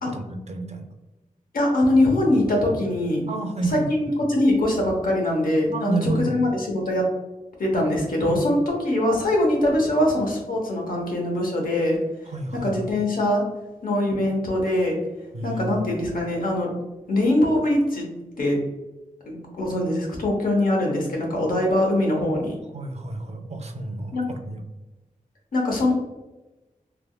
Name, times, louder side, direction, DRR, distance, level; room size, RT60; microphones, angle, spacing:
voice 1, 0.0-0.8 3.3-3.9 5.7-6.4 8.3-8.4 12.3-12.7 15.3-15.7 22.7-24.6, right 3 dB, 50° right, 5 dB, 0.4 m, -30 dB
voice 2, 1.5-3.2 3.6-7.0 7.6-12.0 12.6-13.4 13.8-15.0 15.4-16.7 17.1-18.1 18.4-18.6 19.3-22.6 24.1-24.3 25.5-25.9, left 1 dB, 85° left, -1 dB, 0.8 m, -22 dB
3.3 x 2.3 x 2.2 m, 1.1 s
wide cardioid pair, 70°, 14 cm